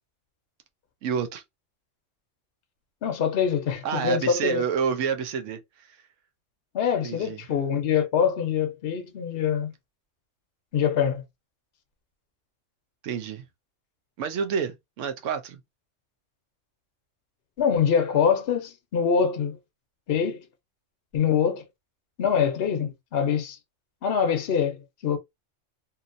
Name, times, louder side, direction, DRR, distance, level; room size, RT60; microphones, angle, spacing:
voice 1, 1.0-1.4 3.8-6.0 7.0-7.4 13.0-13.5 14.2-15.6, right 7 dB, 75° right, 1.0 m, -29 dB
voice 2, 3.0-4.6 6.7-9.7 10.7-11.2 17.6-19.6 20.1-20.4 21.1-21.7 22.2-23.6 24.0-25.2, left 7 dB, 55° left, 0.9 m, -24 dB
2.8 x 2.7 x 2.5 m
omnidirectional pair, 1.3 m